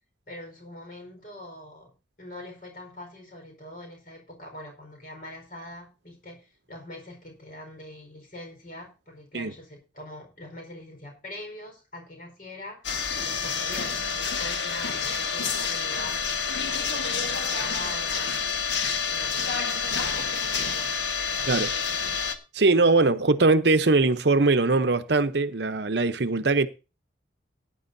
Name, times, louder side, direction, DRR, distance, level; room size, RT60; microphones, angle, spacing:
voice 1, 0.3-12.9 13.1-16.3 16.7-18.6 19.1-21.0, left 1 dB, 45° left, 4.6 m, -43 dB
sound 1, 12.8-22.3, left 5 dB, 70° left, 1.6 m, -28 dB
voice 2, 22.5-26.7, right 3 dB, 65° right, 0.8 m, -21 dB
18.0 x 10.0 x 2.7 m
head